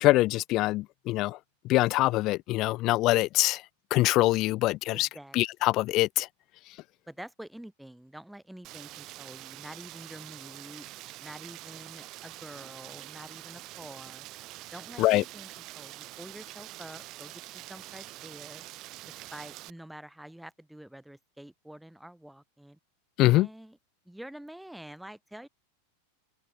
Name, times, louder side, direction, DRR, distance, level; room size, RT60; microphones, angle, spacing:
voice 1, 0.0-1.4 1.6-3.6 3.9-5.1 5.3-6.3 15.0-15.2 23.2-23.5, left 18 dB, 35° left, 0.8 m, -24 dB
voice 2, 4.9-5.4 7.1-10.9 11.2-14.3 14.7-18.7 19.3-22.8 23.2-23.8 24.0-25.5, right 1 dB, ahead, 3.4 m, -47 dB
Rain, 8.6-19.7, right 18 dB, 35° right, 2.2 m, -45 dB
supercardioid pair, 155°, 0 cm